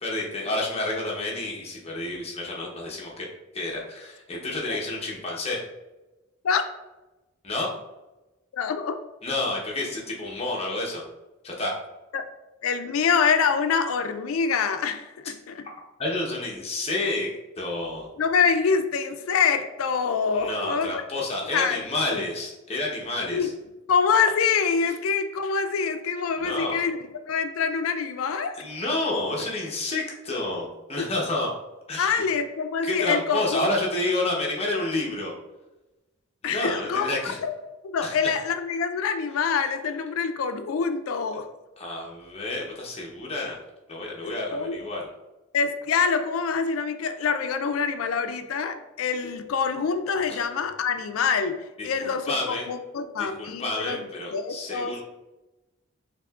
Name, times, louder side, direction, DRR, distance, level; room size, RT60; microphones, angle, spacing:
voice 1, 0.0-3.3 3.5-5.6 7.4-7.7 9.2-11.0 11.4-11.7 16.0-17.3 17.6-18.1 20.3-23.5 26.4-26.8 28.5-31.5 31.9-32.2 32.8-35.3 36.4-37.4 38.0-38.3 41.8-43.6 43.9-45.1 51.8-52.7 53.2-55.0, left 2 dB, 30° left, -2 dB, 0.8 m, -29 dB
voice 2, 8.5-9.0 12.1-12.2 12.6-15.6 18.2-20.9 21.5-21.8 22.1-22.2 23.3-23.5 23.9-27.0 27.3-28.5 32.0-33.6 36.4-37.1 37.4-37.6 37.8-41.5 44.2-44.8 45.5-51.6 51.8-54.0 54.3-54.9, left 6 dB, 80° left, 9 dB, 0.4 m, -25 dB
5.9 x 2.9 x 2.3 m, 1.1 s
head